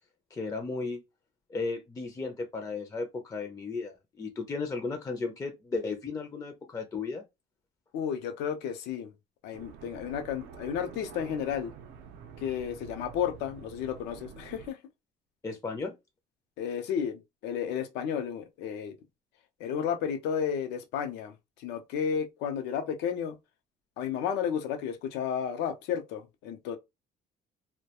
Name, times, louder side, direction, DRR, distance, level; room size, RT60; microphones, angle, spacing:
voice 1, 0.3-1.0 1.5-7.2 15.4-15.9, left 4 dB, 20° left, 0.4 m, -35 dB
voice 2, 7.9-9.1 9.4-11.7 12.4-14.8 16.6-18.9 19.6-23.4 24.0-26.8, left 8 dB, 90° left, 0.5 m, -32 dB
sound 1, 9.5-14.7, right 7 dB, 85° right, 0.5 m, -47 dB
2.3 x 2.1 x 2.8 m
cardioid pair, 110°, 17 cm